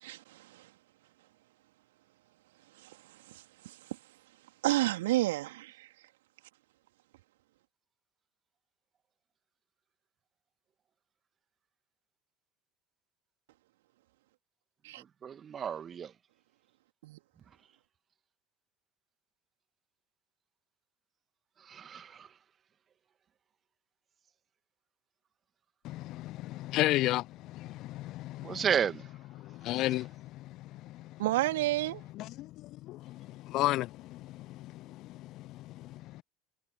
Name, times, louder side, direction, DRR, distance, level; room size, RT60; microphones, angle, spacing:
voice 1, 0.0-0.7 2.8-3.0 3.3-3.8 4.6-5.9 14.8-15.0 17.0-17.2 31.2-32.0, right 17 dB, 65° right, 3.4 m, -31 dB
voice 2, 15.0-16.1 21.6-22.3 28.4-29.1 29.7-29.8, right 8 dB, 30° right, 2.5 m, -33 dB
voice 3, 25.8-28.7 29.4-31.2 32.1-36.2, left 17 dB, 50° left, 0.9 m, -34 dB
figure-of-eight pair, 70°, 0 cm